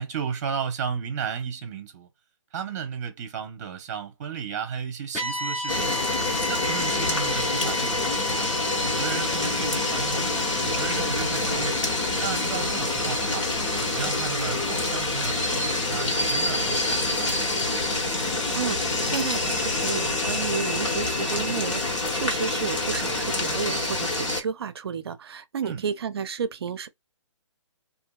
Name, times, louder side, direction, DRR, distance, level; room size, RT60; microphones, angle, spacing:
voice 1, 0.0-2.1 2.5-6.0 6.5-8.5 8.8-10.3 10.6-11.8 12.2-13.5 13.8-17.3 25.6-25.8, right 7 dB, 35° right, 0.9 m, -34 dB
sound 1, 5.1-13.4, left 1 dB, 5° left, 0.5 m, -34 dB
sound 2, 5.7-24.4, left 2 dB, 65° left, 1.2 m, -26 dB
voice 2, 18.6-26.9, right 6 dB, 50° right, 0.5 m, -32 dB
2.8 x 2.6 x 2.3 m
hypercardioid pair, 160°, 17 cm